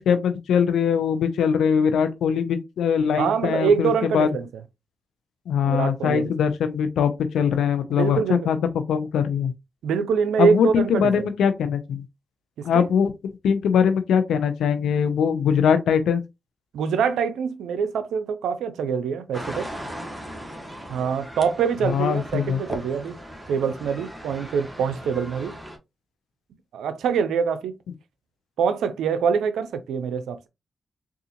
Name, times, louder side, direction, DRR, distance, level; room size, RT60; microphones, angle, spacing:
voice 1, 0.0-4.3 5.5-8.6 8.9-9.5 10.4-12.0 12.6-13.1 13.4-16.2 21.9-22.6, left 7 dB, 85° left, 0.5 m, -22 dB
voice 2, 3.2-4.5 5.6-6.3 7.9-8.5 9.8-11.3 12.6-12.9 16.7-19.7 20.9-23.2 23.5-25.5 26.7-27.7 28.6-30.5, right 6 dB, 85° right, 0.4 m, -24 dB
sound 1, 19.3-25.8, equal, 10° right, 1.2 m, -38 dB
3.8 x 2.4 x 2.8 m
supercardioid pair, 40°, 0 cm